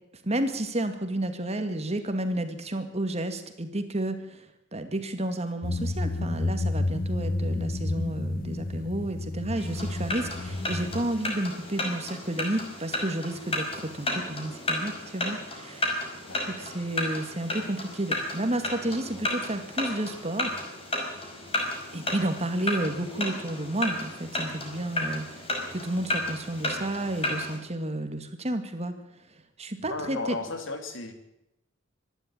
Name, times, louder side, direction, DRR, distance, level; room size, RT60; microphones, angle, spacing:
voice 1, 0.2-4.4 4.7-16.2 16.5-20.6 21.9-25.3 25.7-28.9 29.6-30.4, right 1 dB, 35° right, 7 dB, 2.2 m, -31 dB
sound 1, 5.6-11.1, left 2 dB, 50° left, 1.1 m, -30 dB
sound 2, 9.6-27.6, left 2 dB, 30° left, 5.4 m, -33 dB
voice 2, 16.3-16.8 29.8-31.1, left 3 dB, 85° left, 7 dB, 3.1 m, -35 dB
25.0 x 11.5 x 9.1 m, 0.88 s
head